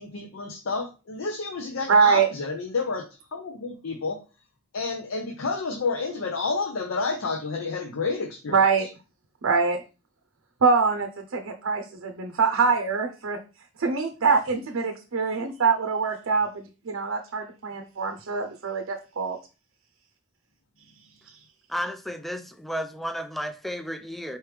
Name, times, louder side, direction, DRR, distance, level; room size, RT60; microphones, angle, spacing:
voice 1, 0.0-3.1 3.3-4.2 4.7-8.9, left 4 dB, 85° left, 0.6 m, -30 dB
voice 2, 1.9-2.3 8.5-8.9 9.4-9.8 10.6-13.4 13.8-19.4, right 5 dB, 85° right, 0.6 m, -24 dB
voice 3, 21.7-24.4, equal, ahead, 0.3 m, -32 dB
4.4 x 3.3 x 3.1 m
head